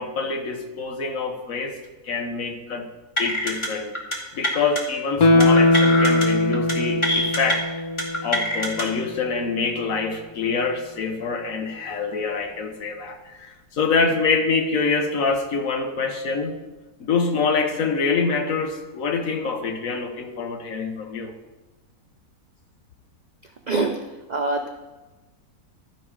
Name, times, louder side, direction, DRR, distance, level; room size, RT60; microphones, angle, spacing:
voice 1, 0.0-1.8 2.0-2.9 3.2-4.0 4.3-7.6 8.2-16.6 17.0-21.3, left 4 dB, 60° left, 5 dB, 1.3 m, -25 dB
sound 1, 3.2-3.7 3.9-4.2 4.4-4.8 5.4-6.3 6.5-6.7 7.0-7.5 8.0-8.8, equal, 20° left, 1.2 m, -24 dB
Guitar, 5.2-8.5 8.8-8.9, left 2 dB, 40° left, 0.6 m, -19 dB
voice 2, 23.7-24.0 24.3-24.7, right 3 dB, 85° right, 4 dB, 0.4 m, -23 dB
13.0 x 5.4 x 4.8 m, 1.1 s
omnidirectional pair, 1.7 m